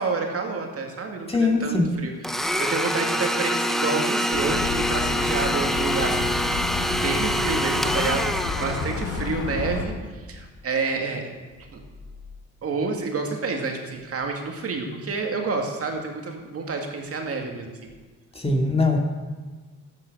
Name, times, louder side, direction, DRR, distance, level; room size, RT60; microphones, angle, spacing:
voice 1, 0.0-8.3 8.6-9.9 10.3-11.3 11.7-11.8 12.6-17.9, right 4 dB, 50° right, 3 dB, 2.1 m, -29 dB
voice 2, 1.3-1.9 18.3-19.0, left 3 dB, 20° left, 2 dB, 2.1 m, -21 dB
Domestic sounds home sounds, 2.2-9.3, equal, ahead, 0.7 m, -25 dB
sound 1, 4.3-9.9, left 4 dB, 85° left, 1.9 m, -30 dB
12.0 x 9.0 x 6.6 m, 1.4 s
cardioid pair, 90°, 30 cm